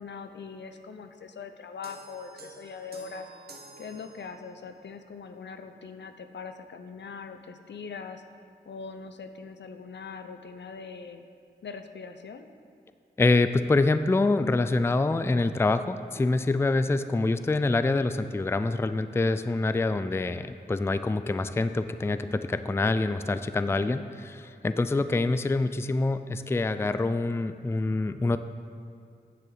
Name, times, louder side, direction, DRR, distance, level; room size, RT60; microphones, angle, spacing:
voice 1, 0.0-3.3 3.8-8.2 8.7-11.2 11.6-12.5, left 5 dB, 75° left, 8 dB, 0.6 m, -41 dB
sound 1, 1.8-4.7, right 2 dB, 60° right, 1.2 m, -50 dB
voice 2, 13.2-28.4, left 3 dB, 15° left, 11 dB, 0.3 m, -26 dB
9.4 x 7.4 x 4.0 m, 2.4 s
cardioid pair, 55°, 18 cm